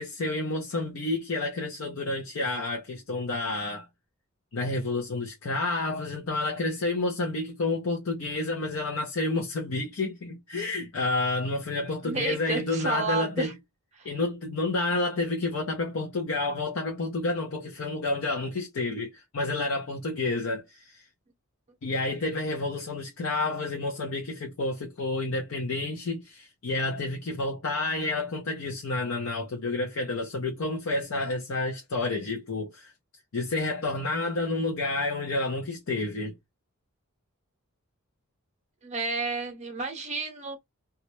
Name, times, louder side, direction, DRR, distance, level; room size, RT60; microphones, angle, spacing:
voice 1, 0.0-3.9 4.5-13.5 14.0-21.1 21.8-32.9 33.3-36.3, left 2 dB, 65° left, 0.5 m, -30 dB
voice 2, 12.0-13.5 14.0-14.1 38.8-40.6, right 4 dB, 30° right, 0.7 m, -31 dB
2.3 x 2.0 x 2.9 m
head